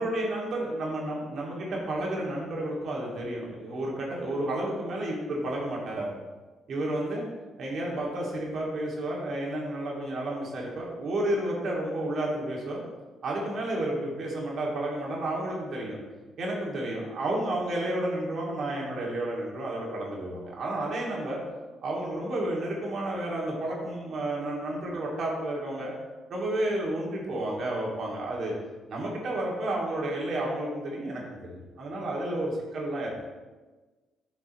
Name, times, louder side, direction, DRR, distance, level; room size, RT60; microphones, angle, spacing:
voice 1, 0.0-6.1 6.7-7.2 7.6-12.8 13.2-16.0 16.4-21.4 21.8-25.9 26.3-28.5 28.9-33.2, right 1 dB, 60° right, -3 dB, 2.5 m, -31 dB
9.8 x 5.9 x 3.1 m, 1.3 s
cardioid pair, 90°, 0 cm